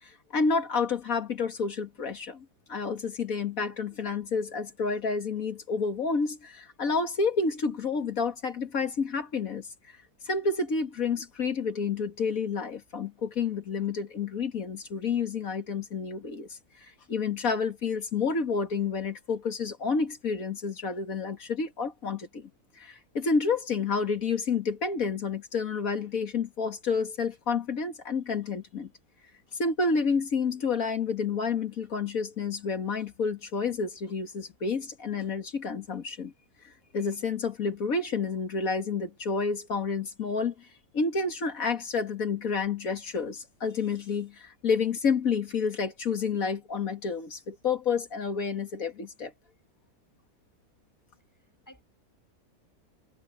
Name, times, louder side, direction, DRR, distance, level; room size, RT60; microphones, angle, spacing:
voice 1, 0.0-9.7 10.3-22.5 22.8-28.9 29.5-36.3 36.6-40.7 40.9-49.3, left 5 dB, 65° left, 2.3 m, -29 dB
voice 2, 51.3-51.8, equal, 10° left, 7.7 m, -55 dB
omnidirectional pair, 1.6 m